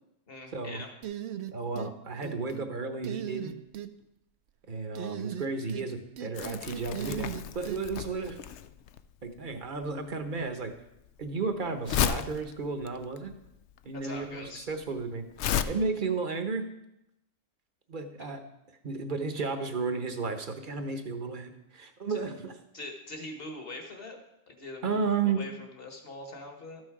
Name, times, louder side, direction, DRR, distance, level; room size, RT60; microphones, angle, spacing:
voice 1, 0.3-0.9 13.9-14.7 18.2-18.3 22.1-22.2 22.7-24.2 24.5-26.8, left 2 dB, 50° left, 3 dB, 1.7 m, -43 dB
sound 1, 1.0-1.9 2.2-2.7 3.0-3.9 5.0-5.9 6.2-7.8, right 10 dB, 65° right, 0.8 m, -37 dB
voice 2, 1.5-3.5 4.7-7.3 7.5-8.4 9.2-10.7 11.2-13.3 13.8-15.2 15.7-16.7 17.9-18.4 18.8-22.6 24.8-25.4, right 4 dB, 45° right, 7 dB, 1.0 m, -33 dB
Crumpling crinkling, 6.3-15.6, left 10 dB, 70° left, 0.8 m, -34 dB
13.0 x 6.4 x 4.8 m, 0.85 s
omnidirectional pair, 1.3 m